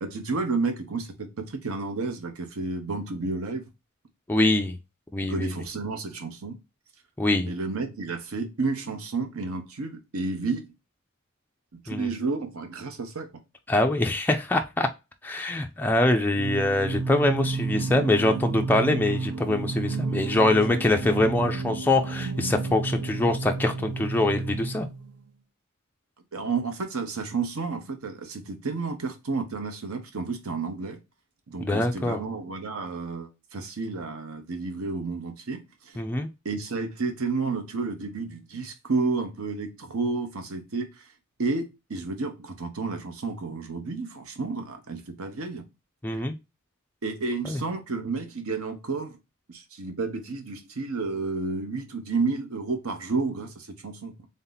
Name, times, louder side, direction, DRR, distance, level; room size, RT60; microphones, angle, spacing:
voice 1, 0.0-3.7 5.3-6.6 7.5-10.7 11.7-13.3 26.3-31.0 31.5-36.0 36.4-41.1 41.4-45.6 46.1-46.2 47.0-49.2 49.5-54.1, right 3 dB, 65° right, 7 dB, 0.8 m, -31 dB
voice 2, 4.3-4.8 5.1-5.5 7.2-7.5 11.9-12.1 13.7-14.9 15.2-24.9 31.6-32.2 36.0-36.3 46.0-46.3 47.4-47.6, left 2 dB, 10° left, 3 dB, 0.3 m, -24 dB
Singing, 16.3-25.2, right 4 dB, 85° right, 0.5 m, -31 dB
3.7 x 2.8 x 3.9 m, 0.25 s
head